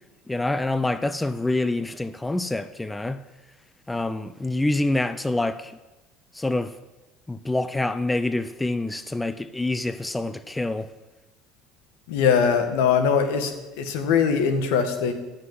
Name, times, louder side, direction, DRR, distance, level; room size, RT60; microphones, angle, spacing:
voice 1, 0.3-3.2 3.9-5.7 6.3-6.7 7.3-10.9, left 2 dB, 10° left, 0.7 m, -26 dB
voice 2, 12.1-15.1, left 6 dB, 75° left, 1.9 m, -21 dB
15.0 x 6.5 x 9.7 m
supercardioid pair, 85°, 0 cm